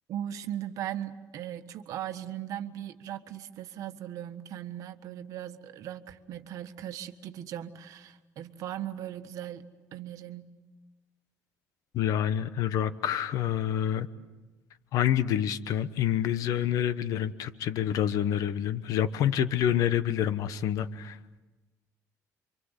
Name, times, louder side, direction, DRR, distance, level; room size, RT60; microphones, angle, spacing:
voice 1, 0.1-10.5, right 11 dB, 60° right, 8 dB, 1.5 m, -38 dB
voice 2, 11.9-14.1 14.9-21.2, left 10 dB, 65° left, 13 dB, 1.1 m, -27 dB
28.0 x 25.0 x 8.2 m, 1.2 s
cardioid pair, 160°, 6 cm